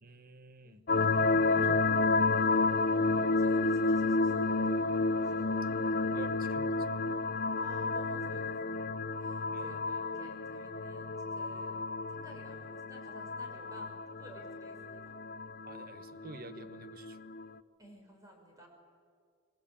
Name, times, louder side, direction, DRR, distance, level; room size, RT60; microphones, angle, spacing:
voice 1, 0.0-0.8 1.5-1.8 6.1-6.8 9.5-9.7 15.7-17.2, right 3 dB, 45° right, 13 dB, 1.1 m, -49 dB
sound 1, 0.9-17.5, left 3 dB, 45° left, 0.7 m, -31 dB
voice 2, 1.2-1.9 2.4-2.7 3.4-4.9 5.2-5.6 6.2-6.6 7.5-8.9 9.2-11.8 12.1-15.2 17.8-18.7, right 1 dB, 15° right, 1 dB, 5.5 m, -54 dB
27.5 x 22.5 x 8.8 m, 2.2 s
head